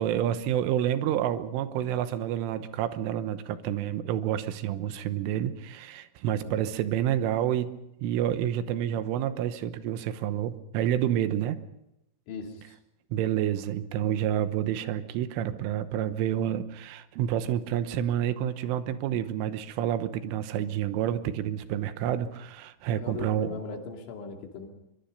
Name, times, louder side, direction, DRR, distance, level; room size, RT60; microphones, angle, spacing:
voice 1, 0.0-11.6 13.1-23.6, right 11 dB, 90° right, 11 dB, 3.6 m, -29 dB
voice 2, 12.3-12.8 22.9-24.7, left 5 dB, 75° left, 3 dB, 4.9 m, -39 dB
24.0 x 22.5 x 5.4 m, 0.87 s
omnidirectional pair, 5.6 m